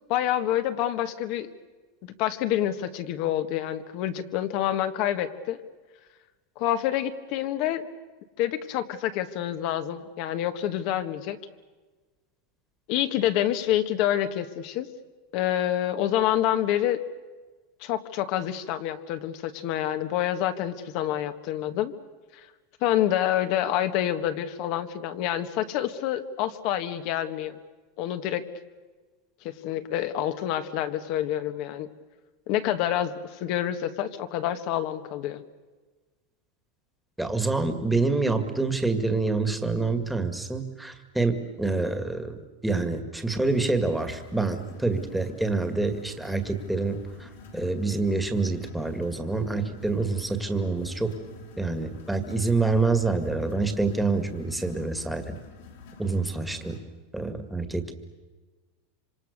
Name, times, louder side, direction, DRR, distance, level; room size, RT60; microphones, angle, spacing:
voice 1, 0.1-1.5 2.0-5.6 6.6-7.9 8.4-11.4 12.9-14.9 15.3-17.0 17.8-21.9 22.3-22.5 22.8-27.6 28.0-28.5 29.4-31.9 32.5-35.4, left 12 dB, 50° left, 9 dB, 1.6 m, -27 dB
voice 2, 37.2-42.4 42.6-51.2 51.6-55.3 56.0-56.8 57.1-57.9, right 3 dB, 5° right, 7 dB, 2.0 m, -27 dB
sound 1, 43.2-56.8, left 4 dB, 80° left, 6.1 m, -48 dB
26.5 x 25.5 x 6.6 m, 1.3 s
supercardioid pair, 145°, 0 cm